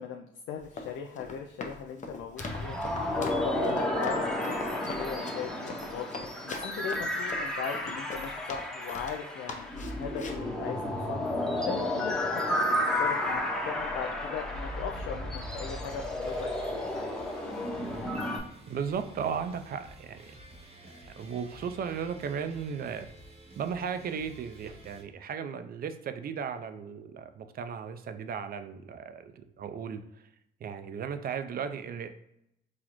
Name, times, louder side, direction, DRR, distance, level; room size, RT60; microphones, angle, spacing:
voice 1, 0.0-6.1 6.4-17.2, left 7 dB, 80° left, 3 dB, 0.4 m, -39 dB
Run, 0.6-9.2 9.5-10.5, left 3 dB, 40° left, 0.6 m, -41 dB
sound 1, 2.4-18.4, left 1 dB, 5° left, 0.7 m, -32 dB
sound 2, 16.2-25.0, right 1 dB, 30° right, 0.9 m, -51 dB
voice 2, 18.7-20.3 21.0-23.1 23.6-30.2 30.6-32.1, right 7 dB, 50° right, 9 dB, 0.4 m, -36 dB
4.0 x 2.4 x 3.0 m, 0.80 s
cardioid pair, 90°, 20 cm